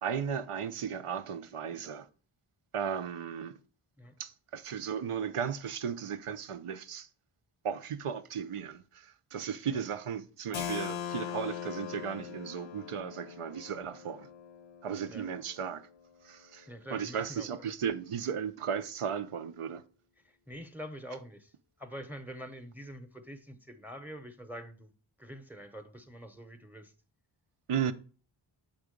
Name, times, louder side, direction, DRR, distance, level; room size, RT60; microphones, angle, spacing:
voice 1, 0.0-2.1 2.7-3.6 4.2-7.1 7.6-14.3 14.8-15.8 16.2-19.8 27.7-27.9, right 7 dB, 90° right, 0.7 m, -35 dB
Keyboard (musical), 10.5-16.1, left 9 dB, 65° left, 0.6 m, -41 dB
voice 2, 16.6-17.8 20.2-24.9 25.2-26.9 27.8-27.9, equal, 5° right, 0.7 m, -46 dB
7.2 x 3.7 x 5.0 m
wide cardioid pair, 90°, 50 cm